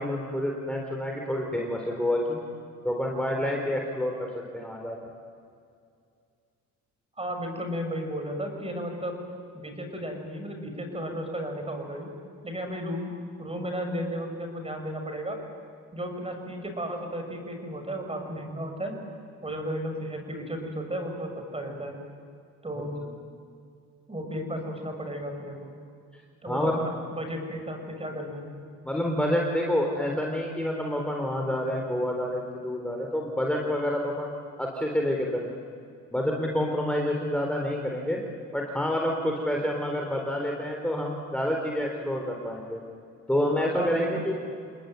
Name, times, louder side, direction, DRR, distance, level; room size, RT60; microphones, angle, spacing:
voice 1, 0.0-2.4 2.8-5.0 23.0-23.1 26.5-26.8 28.8-34.3 34.6-35.5 36.1-38.2 38.5-42.8 43.3-44.3, left 1 dB, 5° left, 0 dB, 3.9 m, -28 dB
voice 2, 7.2-9.2 9.5-12.1 12.4-15.4 15.9-19.0 19.4-22.0 22.6-23.0 24.1-25.7 26.4-28.5 43.7-44.3, equal, 20° right, 4 dB, 6.6 m, -34 dB
29.0 x 20.0 x 9.3 m, 2.4 s
cardioid pair, 90°, 30 cm